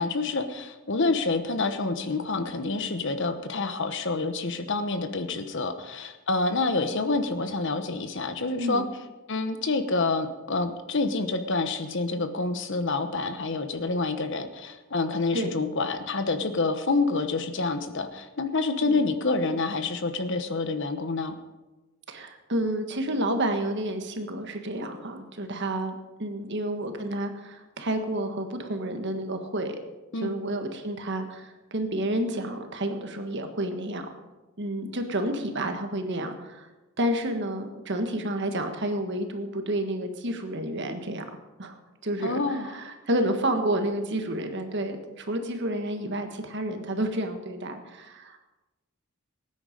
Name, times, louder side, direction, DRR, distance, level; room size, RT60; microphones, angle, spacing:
voice 1, 0.0-8.8 9.3-21.3 30.1-30.3 42.2-42.7, left 3 dB, 55° left, 9 dB, 1.1 m, -27 dB
voice 2, 22.1-29.8 30.2-34.1 34.6-36.7 37.0-41.2 41.6-41.8 42.0-48.4, right 1 dB, 55° right, 6 dB, 1.5 m, -30 dB
18.5 x 9.6 x 5.2 m, 1.1 s
head